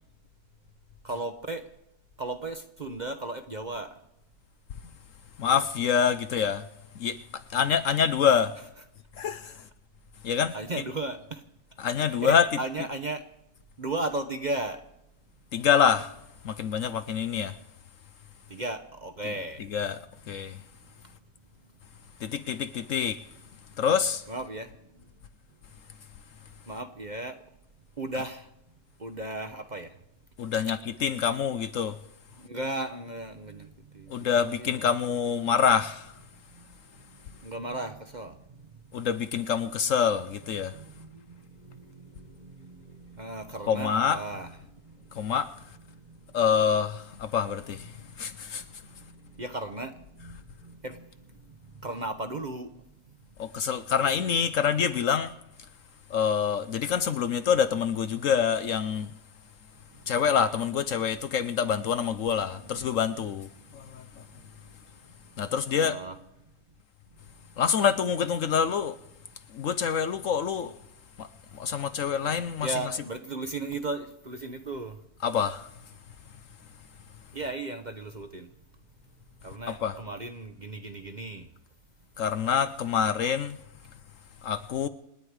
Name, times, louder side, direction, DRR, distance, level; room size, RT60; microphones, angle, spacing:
voice 1, 1.0-1.6 2.2-3.9 10.5-11.4 12.1-13.2 13.8-14.8 18.5-19.7 24.3-24.7 26.7-27.4 28.0-28.5 29.0-29.9 30.7-30.8 32.4-34.3 34.6-34.8 36.6-36.7 37.4-38.6 40.7-44.6 44.8-45.1 45.9-46.4 47.9-48.0 49.1-51.1 51.8-52.7 62.6-62.8 65.7-66.2 72.6-75.0 77.3-78.5 79.4-81.5, right 2 dB, 35° right, 0.9 m, -36 dB
voice 2, 5.4-6.6 7.0-7.2 7.5-8.5 9.2-9.5 10.2-10.6 11.8-12.5 15.5-16.1 16.4-17.5 19.7-20.0 20.3-20.6 22.2-23.2 23.8-24.2 30.4-32.0 34.1-36.1 38.9-40.7 43.7-44.2 45.1-45.5 46.3-47.9 48.2-48.6 53.4-55.3 56.1-59.1 60.1-64.0 65.4-66.0 67.6-69.0 69.5-70.7 71.2-71.3 71.5-72.7 75.2-75.6 79.7-80.0 82.2-83.6 84.4-84.9, left 7 dB, 60° left, 1.0 m, -26 dB
27.5 x 9.6 x 4.8 m
omnidirectional pair, 1.7 m